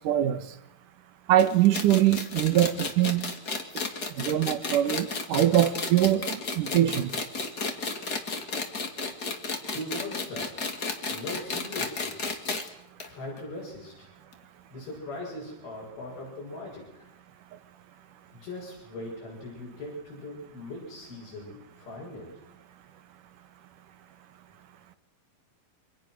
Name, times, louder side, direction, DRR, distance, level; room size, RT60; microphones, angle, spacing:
voice 1, 0.0-0.4 1.3-3.3 4.2-7.1, right 12 dB, 65° right, 12 dB, 2.6 m, -23 dB
sound 1, 1.4-12.7 13.0-13.1 13.4-13.5 14.3-14.4, left 4 dB, 30° left, 2.2 m, -33 dB
voice 2, 9.6-10.7 11.1-12.2 13.1-14.1 14.7-17.1 18.3-22.4, left 2 dB, 70° left, -4 dB, 9.4 m, -40 dB
28.5 x 25.5 x 6.4 m, 0.76 s
omnidirectional pair, 4.4 m